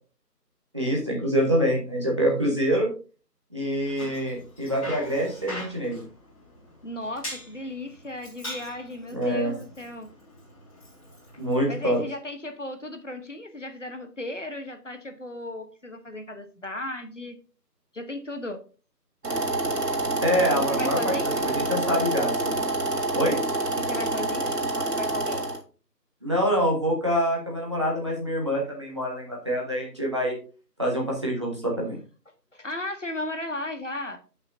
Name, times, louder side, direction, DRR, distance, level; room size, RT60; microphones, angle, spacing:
voice 1, 0.7-2.9 3.5-6.0 9.1-9.5 11.4-12.0 20.2-21.1 21.4-22.5 23.1-23.4 26.2-30.3 30.8-31.9, equal, 15° right, -3 dB, 1.5 m, -25 dB
Bicycle, 3.7-12.0, left 1 dB, 20° left, 4.7 m, -43 dB
voice 2, 6.8-10.1 11.7-17.4 17.9-18.6 20.5-21.5 23.8-25.5 32.5-34.2, left 1 dB, 50° left, 7 dB, 1.2 m, -35 dB
sound 1, 19.2-25.6, right 2 dB, 70° right, 2.3 m, -27 dB
13.0 x 5.8 x 2.7 m, 0.36 s
figure-of-eight pair, 165°, 49 cm